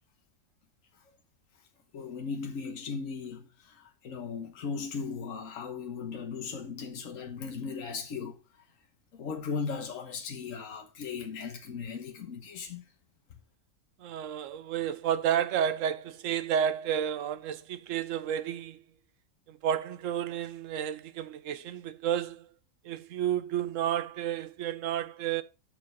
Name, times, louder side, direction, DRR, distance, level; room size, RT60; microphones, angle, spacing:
voice 1, 1.9-8.4 9.1-12.8, left 5 dB, 75° left, 1.5 m, -37 dB
voice 2, 14.0-18.8 19.5-22.5 22.8-25.4, right 9 dB, 75° right, 1.0 m, -31 dB
6.4 x 5.9 x 5.4 m
omnidirectional pair, 1.4 m